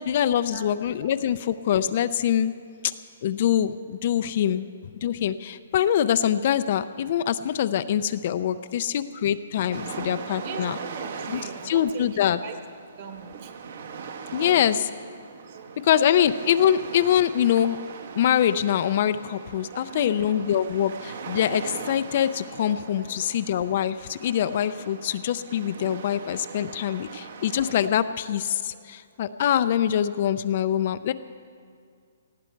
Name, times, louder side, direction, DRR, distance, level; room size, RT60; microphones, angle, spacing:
voice 1, 0.0-2.5 2.8-2.9 3.2-4.7 5.0-10.8 11.3-11.4 11.6-12.4 14.3-14.9 15.8-17.8 18.2-31.1, left 10 dB, 40° left, 12 dB, 0.4 m, -24 dB
sound 1, 9.7-27.9, right 6 dB, 55° right, 1.2 m, -40 dB
voice 2, 10.4-12.6 13.0-13.5 14.4-14.7 15.5-15.7 16.0-16.2 19.7-20.4 22.9-23.0 27.0-27.1 28.7-28.9, right 5 dB, 35° right, 5 dB, 1.4 m, -41 dB
19.0 x 15.5 x 4.6 m, 2.2 s
hypercardioid pair, 170°, 0 cm